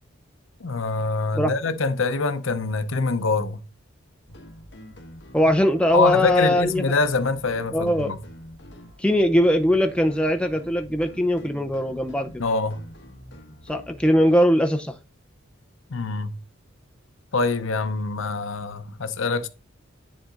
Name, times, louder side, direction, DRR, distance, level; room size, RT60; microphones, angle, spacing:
voice 1, 0.6-3.6 5.9-8.2 12.4-12.8 15.9-16.4 17.3-19.5, left 3 dB, 70° left, 0.8 m, -24 dB
sound 1, 4.3-14.4, equal, 55° left, 1.5 m, -45 dB
voice 2, 5.3-6.8 7.7-8.2 9.0-12.4 13.7-14.9, equal, 5° left, 0.7 m, -20 dB
10.0 x 3.9 x 3.7 m
head